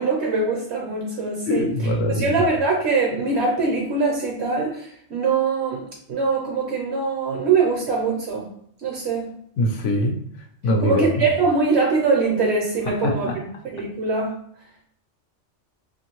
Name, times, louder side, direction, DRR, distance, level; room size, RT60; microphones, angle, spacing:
voice 1, 0.0-1.7 2.1-8.5 8.8-9.3 10.8-13.5 13.7-14.3, right 4 dB, 65° right, -1 dB, 0.9 m, -22 dB
voice 2, 1.5-2.3 9.6-10.2 10.6-11.0 12.9-13.4, left 1 dB, 75° left, 2 dB, 0.9 m, -22 dB
2.5 x 2.4 x 2.9 m, 0.67 s
omnidirectional pair, 1.3 m